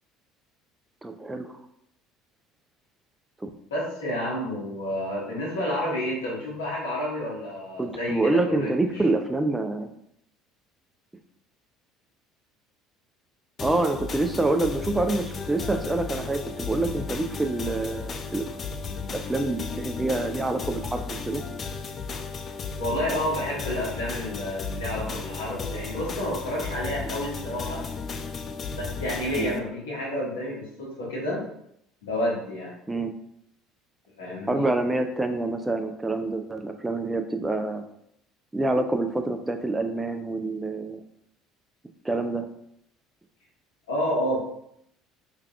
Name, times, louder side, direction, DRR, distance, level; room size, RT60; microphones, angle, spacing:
voice 1, 1.0-1.6 3.4-3.5 7.8-9.9 13.6-18.5 19.1-21.4 29.4-29.5 32.9-33.1 34.5-37.8 38.5-41.0 42.0-42.5, right 2 dB, 15° right, 5 dB, 0.4 m, -27 dB
voice 2, 3.7-9.0 22.8-27.8 28.7-31.4 32.0-32.7 34.2-34.7 43.9-44.4, left 1 dB, 80° left, -6 dB, 1.3 m, -30 dB
sound 1, 13.6-29.6, left 5 dB, 40° left, 0.5 m, -34 dB
4.6 x 3.3 x 2.3 m, 0.74 s
hypercardioid pair, 65°, 0 cm